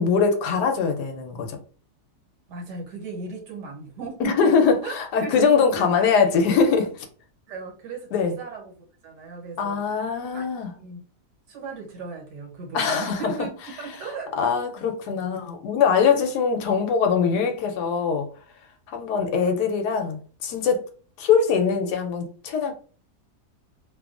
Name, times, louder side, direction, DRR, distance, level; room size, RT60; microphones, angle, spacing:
voice 1, 0.0-1.6 4.2-7.1 8.1-8.4 9.6-10.7 12.7-13.3 14.4-18.3 18.9-20.8 21.2-22.7, left 6 dB, 85° left, 1.2 m, -22 dB
voice 2, 2.5-4.5 4.8-5.3 5.7-5.9 7.5-8.1 8.4-8.6 9.0-9.8 10.3-10.5 10.8-11.0 11.5-13.5 13.8-14.5 14.8-14.9, right 4 dB, 85° right, 1.6 m, -36 dB
3.0 x 2.3 x 2.4 m
omnidirectional pair, 1.8 m